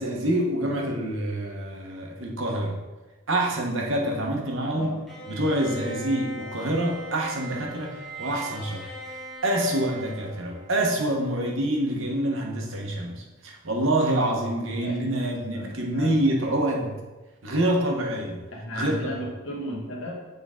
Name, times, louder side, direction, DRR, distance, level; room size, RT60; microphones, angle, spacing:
voice 1, 0.0-2.8 3.3-4.9 5.3-8.9 9.4-16.9 17.4-18.5 18.7-19.2, right 1 dB, 65° right, 0 dB, 1.1 m, -26 dB
voice 2, 4.7-5.0 14.8-16.2 18.5-20.1, left 1 dB, 65° left, -2 dB, 1.4 m, -35 dB
Bowed string instrument, 5.1-11.1, right 1 dB, ahead, 1.1 m, -40 dB
8.1 x 3.8 x 3.7 m, 1.2 s
head